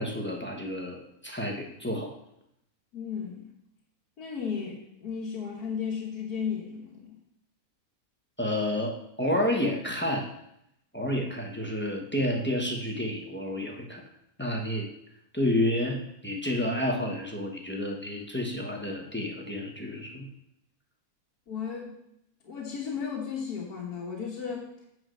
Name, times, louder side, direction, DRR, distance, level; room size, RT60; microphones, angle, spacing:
voice 1, 0.0-2.1 8.4-10.3 10.9-14.0 14.4-14.9 15.3-20.3, left 1 dB, 10° left, 0 dB, 1.1 m, -30 dB
voice 2, 2.9-3.5 4.2-7.2 21.5-21.9 22.4-24.7, left 6 dB, 85° left, -2 dB, 1.8 m, -34 dB
8.7 x 4.5 x 6.4 m, 0.77 s
omnidirectional pair, 1.6 m